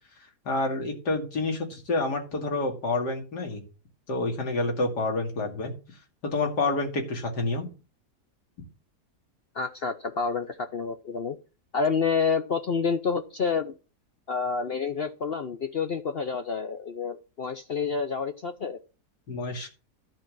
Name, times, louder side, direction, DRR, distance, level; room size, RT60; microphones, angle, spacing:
voice 1, 0.5-3.6 4.1-5.7 6.2-7.7 19.3-19.7, left 2 dB, 90° left, 2 dB, 2.8 m, -28 dB
voice 2, 9.5-11.4 11.7-13.7 14.3-18.8, left 5 dB, 55° left, 7 dB, 0.7 m, -28 dB
12.0 x 4.6 x 7.4 m, 0.34 s
omnidirectional pair, 1.7 m